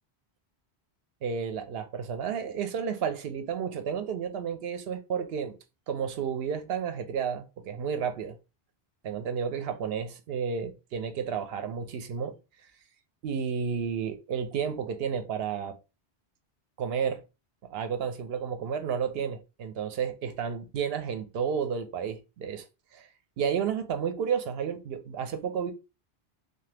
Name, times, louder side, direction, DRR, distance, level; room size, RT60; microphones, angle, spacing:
voice 1, 1.2-5.6 5.9-8.4 9.0-12.4 13.2-15.8 16.8-17.2 17.7-22.7 22.9-23.1 23.4-25.7, right 7 dB, 70° right, 0.8 m, -31 dB
2.8 x 2.2 x 3.2 m
omnidirectional pair, 1.1 m